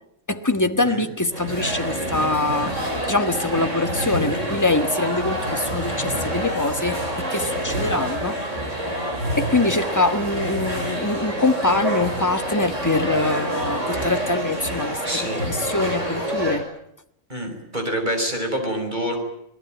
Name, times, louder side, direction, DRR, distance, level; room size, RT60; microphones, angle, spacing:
voice 1, 0.3-2.7 3.1-8.4 9.4-16.7, left 2 dB, 15° left, 7 dB, 1.5 m, -24 dB
sound 1, 1.3-16.6, right 1 dB, 90° right, 7.0 m, -27 dB
voice 2, 15.0-15.5 17.3-19.2, right 1 dB, 40° right, 4 dB, 6.0 m, -26 dB
28.0 x 19.0 x 9.2 m, 0.75 s
omnidirectional pair, 1.3 m